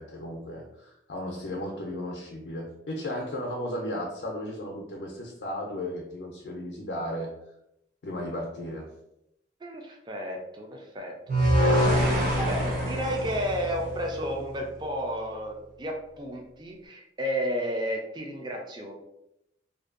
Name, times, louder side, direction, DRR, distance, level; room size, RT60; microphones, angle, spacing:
voice 1, 0.0-7.3 8.0-8.9, left 1 dB, 85° left, -1 dB, 0.4 m, -35 dB
voice 2, 9.6-18.9, equal, 25° right, 1 dB, 0.4 m, -33 dB
sound 1, 11.3-14.5, equal, 50° right, 0.8 m, -25 dB
2.5 x 2.2 x 2.4 m, 0.83 s
head